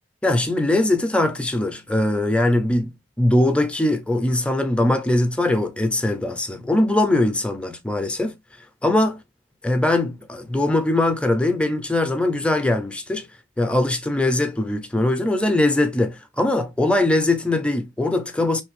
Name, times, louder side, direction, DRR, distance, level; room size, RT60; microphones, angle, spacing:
voice 1, 0.2-8.3 8.8-9.2 9.6-13.3 13.6-18.6, left 1 dB, 5° left, 0.4 m, -21 dB
3.2 x 2.6 x 3.0 m
head